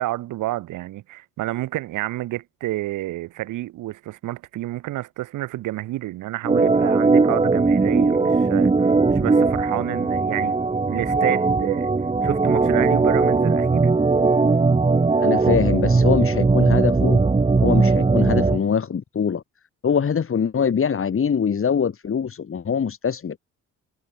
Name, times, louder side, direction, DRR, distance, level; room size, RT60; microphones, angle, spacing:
voice 1, 0.0-10.6 10.9-11.9 12.2-13.9, right 16 dB, 90° right, 5.4 m, -29 dB
Organ, 6.4-18.6, right 4 dB, 20° right, 1.4 m, -19 dB
voice 2, 15.2-17.2 17.6-19.4 19.8-23.4, left 7 dB, 45° left, 4.5 m, -23 dB
cardioid pair, 90°, 30 cm